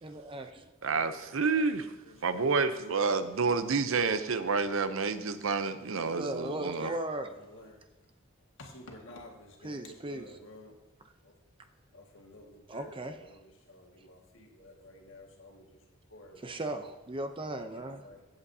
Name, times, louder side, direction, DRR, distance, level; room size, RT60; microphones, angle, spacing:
voice 1, 0.0-0.6 6.1-7.3 9.6-10.3 12.7-13.1 16.4-18.0, right 1 dB, 25° right, 7 dB, 0.6 m, -37 dB
voice 2, 0.8-1.9 2.2-6.9, right 4 dB, 80° right, 11 dB, 0.6 m, -29 dB
voice 3, 2.0-3.0 7.3-7.9 8.6-10.8 11.2-11.3 11.9-16.9 17.7-18.3, left 1 dB, 70° left, 0 dB, 1.8 m, -52 dB
15.5 x 8.0 x 2.8 m, 1.1 s
head